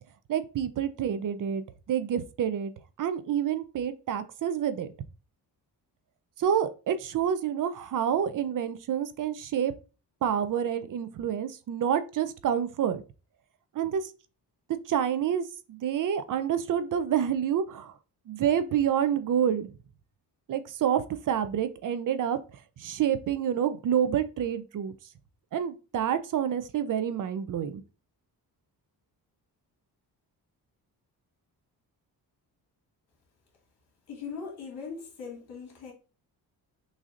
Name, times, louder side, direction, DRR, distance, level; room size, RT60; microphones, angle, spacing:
voice 1, 0.3-2.7 3.0-4.9 6.4-9.7 10.2-13.0 13.7-14.1 14.9-17.9 18.3-19.7 20.5-22.4 22.8-24.9 25.5-27.8, right 9 dB, 55° right, 0.5 m, -28 dB
voice 2, 34.1-35.9, left 5 dB, 80° left, 2.0 m, -40 dB
6.2 x 2.7 x 2.5 m
cardioid pair, 125°, 38 cm